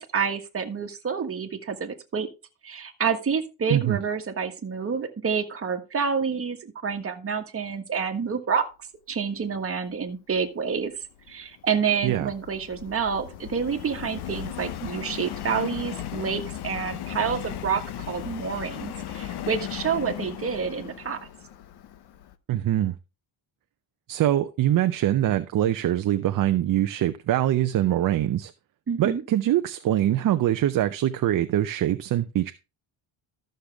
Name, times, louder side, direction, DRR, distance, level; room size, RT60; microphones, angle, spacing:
voice 1, 0.0-2.3 2.6-8.6 9.1-10.9 11.3-17.8 18.1-21.2 28.9-29.2, right 6 dB, 30° right, 1.6 m, -28 dB
Subway metro underground, 11.0-22.3, left 11 dB, 60° left, 0.9 m, -37 dB
voice 2, 22.5-23.0 24.1-28.5 29.0-32.5, right 12 dB, 45° right, 0.6 m, -23 dB
13.0 x 6.7 x 3.5 m
cardioid pair, 130°, 45 cm